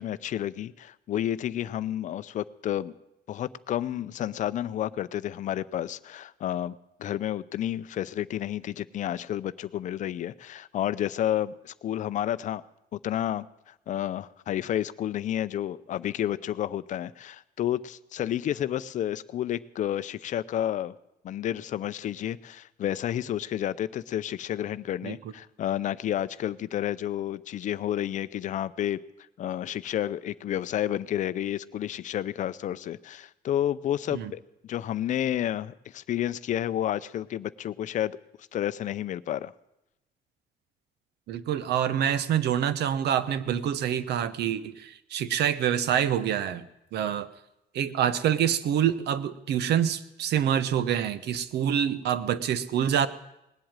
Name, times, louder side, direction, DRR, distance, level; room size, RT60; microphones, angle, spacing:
voice 1, 0.0-2.9 3.3-12.6 12.9-20.9 21.2-29.0 29.4-38.2 38.5-39.5, left 11 dB, 50° left, 14 dB, 0.5 m, -30 dB
voice 2, 41.3-46.6 46.9-47.3 47.7-53.1, right 9 dB, 90° right, 14 dB, 0.9 m, -26 dB
19.0 x 7.9 x 8.8 m, 0.88 s
cardioid pair, 180°, 17 cm